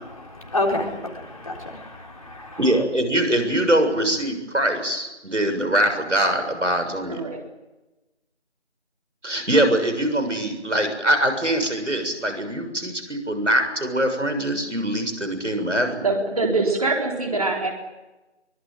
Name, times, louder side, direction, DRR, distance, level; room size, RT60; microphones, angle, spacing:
voice 1, 0.2-2.6, left 2 dB, 30° left, 0 dB, 3.6 m, -29 dB
voice 2, 2.6-7.2 9.2-16.0, right 1 dB, 90° right, 7 dB, 7.0 m, -23 dB
voice 3, 7.1-7.4 16.0-17.7, right 3 dB, 30° right, 1 dB, 4.2 m, -23 dB
24.0 x 20.5 x 9.2 m, 1.1 s
figure-of-eight pair, 170°, 35 cm